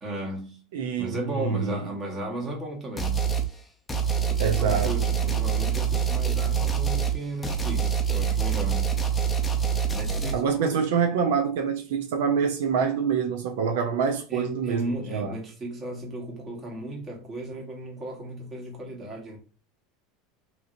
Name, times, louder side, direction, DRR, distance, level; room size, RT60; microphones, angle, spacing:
voice 1, 0.0-0.6 1.0-3.3 4.3-8.9 9.9-10.8 14.3-19.4, right 1 dB, 25° right, 1.2 m, -35 dB
voice 2, 0.7-1.8 4.4-4.9 5.3-5.4 10.3-15.3, right 6 dB, 80° right, 0.5 m, -26 dB
sound 1, 3.0-3.5 3.9-10.4, right 7 dB, 15° left, 0.5 m, -25 dB
2.8 x 2.8 x 2.5 m
supercardioid pair, 135°, 0 cm